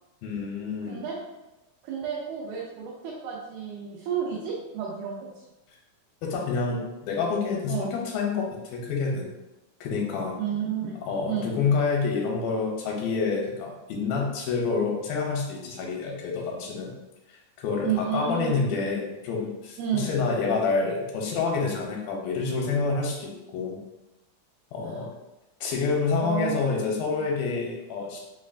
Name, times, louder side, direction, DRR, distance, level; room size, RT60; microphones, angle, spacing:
voice 1, 0.2-1.0 6.2-9.3 9.8-10.4 11.1-16.9 17.6-23.8 24.7-25.1 25.6-28.2, left 4 dB, 85° left, -1 dB, 2.4 m, -28 dB
voice 2, 0.8-1.2 1.8-5.4 7.7-7.9 10.4-11.0 11.3-11.6 17.8-18.7 19.8-20.1 24.8-25.1 26.0-26.6, right 7 dB, 85° right, -5 dB, 2.4 m, -31 dB
5.8 x 2.2 x 2.4 m, 1.0 s
omnidirectional pair, 4.2 m